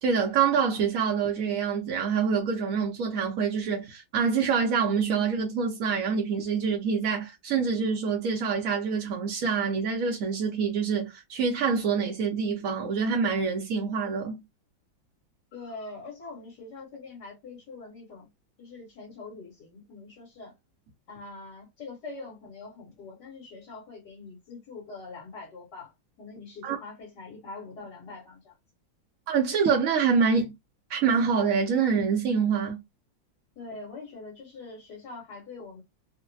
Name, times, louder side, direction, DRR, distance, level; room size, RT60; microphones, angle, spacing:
voice 1, 0.0-14.4 26.6-26.8 29.3-30.5 30.9-32.8, right 6 dB, 60° right, 0.9 m, -26 dB
voice 2, 15.5-18.3 18.6-20.5 21.1-28.6 33.6-35.8, left 3 dB, 60° left, 2.0 m, -43 dB
3.8 x 2.2 x 2.6 m
omnidirectional pair, 2.1 m